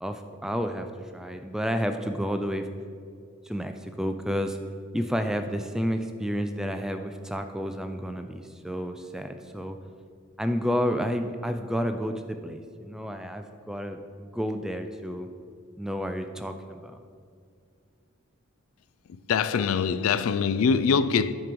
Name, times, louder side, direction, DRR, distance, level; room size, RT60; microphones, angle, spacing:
voice 1, 0.0-2.7 3.5-4.6 4.9-9.8 10.4-15.3 15.8-17.0, equal, 5° right, 0.3 m, -30 dB
voice 2, 19.1-21.3, left 6 dB, 80° left, 0.3 m, -24 dB
9.3 x 4.5 x 5.2 m
head